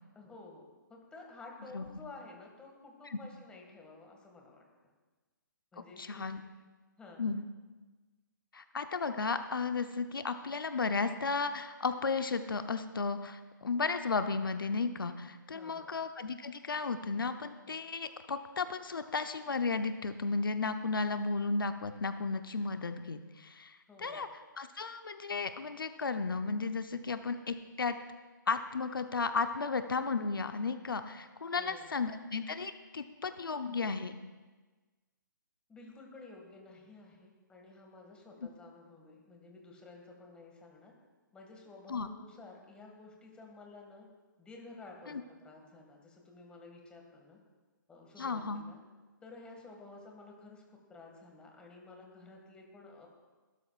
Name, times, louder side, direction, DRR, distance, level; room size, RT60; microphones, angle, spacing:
voice 1, 0.2-4.6 5.7-6.2 7.0-7.3 15.5-16.0 23.9-24.3 31.6-31.9 35.7-40.9 41.3-44.1 44.4-47.4 47.9-48.8 49.2-50.6 50.9-53.1, left 3 dB, 10° left, 1 dB, 2.0 m, -52 dB
voice 2, 6.0-6.4 7.2-7.4 8.5-24.3 24.6-28.0 28.5-34.2 41.9-42.1 45.1-45.2 48.2-48.6, left 4 dB, 90° left, 8 dB, 0.8 m, -34 dB
22.5 x 12.5 x 2.5 m, 1.3 s
hypercardioid pair, 145°, 11 cm